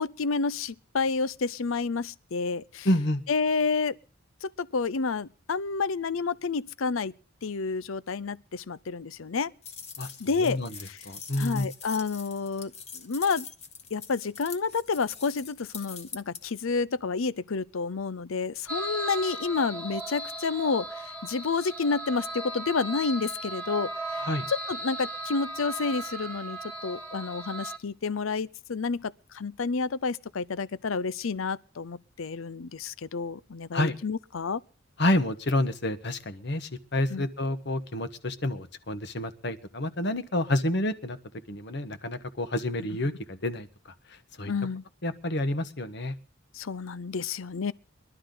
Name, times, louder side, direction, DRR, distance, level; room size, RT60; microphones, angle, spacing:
voice 1, 0.0-2.9 3.3-4.0 4.4-7.1 7.4-9.5 10.2-11.0 11.4-13.5 13.9-20.9 21.2-34.6 37.1-37.3 44.5-44.8 46.5-47.7, left 4 dB, 75° left, 0.6 m, -30 dB
voice 2, 2.8-3.2 10.0-10.8 11.0-11.7 24.2-24.4 33.7-33.9 35.0-41.2 41.5-43.7 44.4-44.5 45.0-46.1, left 1 dB, 55° left, 1.3 m, -29 dB
sound 1, 9.6-16.4, left 6 dB, 30° left, 1.5 m, -43 dB
sound 2, 18.7-27.8, right 2 dB, 10° left, 1.7 m, -37 dB
22.5 x 12.0 x 3.9 m
head